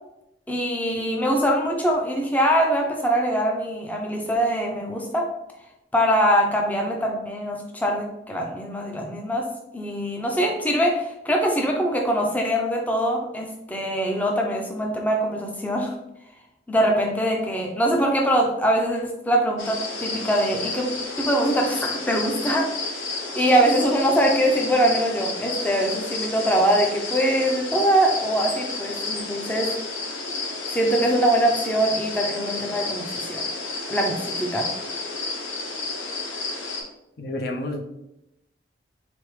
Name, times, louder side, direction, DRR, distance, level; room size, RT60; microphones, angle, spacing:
voice 1, 0.5-5.3 5.9-9.5 9.7-15.9 16.7-20.9 21.2-22.7 23.3-29.7 30.7-33.4 33.9-34.7, right 1 dB, 10° left, 1 dB, 0.5 m, -23 dB
sound 1, 19.6-36.8, left 3 dB, 90° left, 0.9 m, -31 dB
voice 2, 37.2-37.8, left 1 dB, 55° left, 3 dB, 0.5 m, -29 dB
4.0 x 3.4 x 3.1 m, 0.87 s
head